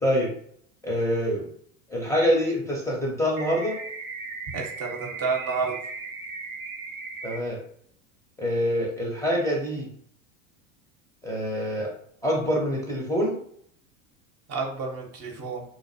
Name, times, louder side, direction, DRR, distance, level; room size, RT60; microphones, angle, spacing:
voice 1, 0.0-0.3 0.8-1.5 1.9-3.8 7.2-7.6 8.4-9.9 11.2-11.9 12.2-13.4, equal, 10° left, -3 dB, 0.5 m, -25 dB
sound 1, 3.4-7.4, right 4 dB, 85° right, 0.7 m, -37 dB
voice 2, 4.5-5.8 14.5-15.6, right 4 dB, 35° right, 0 dB, 0.7 m, -30 dB
2.5 x 2.0 x 2.6 m, 0.63 s
hypercardioid pair, 85°, 40 cm